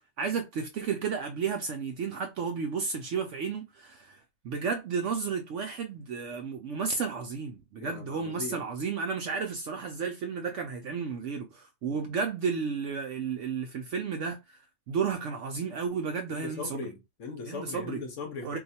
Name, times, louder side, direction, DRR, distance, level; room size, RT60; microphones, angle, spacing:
voice 1, 0.2-4.2 4.4-14.6 14.9-16.9 17.5-18.0 18.4-18.6, right 5 dB, 70° right, 0.7 m, -32 dB
voice 2, 7.8-8.7 11.9-12.1 16.3-18.6, left 4 dB, 65° left, 0.9 m, -39 dB
2.5 x 2.3 x 4.1 m
omnidirectional pair, 1.6 m